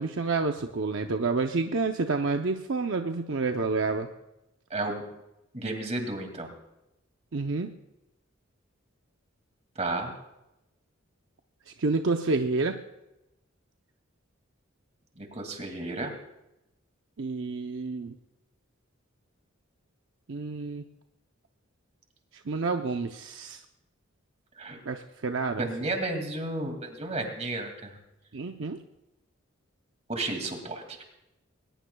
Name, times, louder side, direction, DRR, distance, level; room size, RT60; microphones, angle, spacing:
voice 1, 0.0-4.1 7.3-7.7 11.8-12.8 17.2-18.1 20.3-20.8 22.5-23.6 24.9-25.9 28.3-28.8, right 3 dB, 65° right, 5 dB, 0.7 m, -29 dB
voice 2, 4.7-5.0 5.5-6.5 9.8-10.1 15.2-16.1 24.6-24.8 25.6-27.9 30.1-31.0, right 2 dB, 35° right, 4 dB, 2.3 m, -32 dB
21.0 x 19.5 x 2.3 m, 0.92 s
head